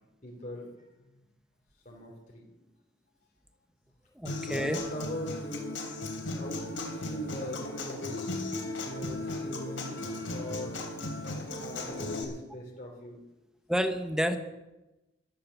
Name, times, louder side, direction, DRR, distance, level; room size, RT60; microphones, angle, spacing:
voice 1, 0.2-0.8 1.8-2.4 4.5-5.8 6.3-8.3 8.8-10.8 11.6-13.2, left 1 dB, 40° left, -2 dB, 3.2 m, -40 dB
Human voice / Acoustic guitar, 4.2-12.2, left 2 dB, 90° left, 3.3 m, -36 dB
voice 2, 4.2-4.8 13.7-14.4, equal, 5° right, 8 dB, 1.0 m, -29 dB
12.5 x 11.5 x 7.1 m, 1.0 s
head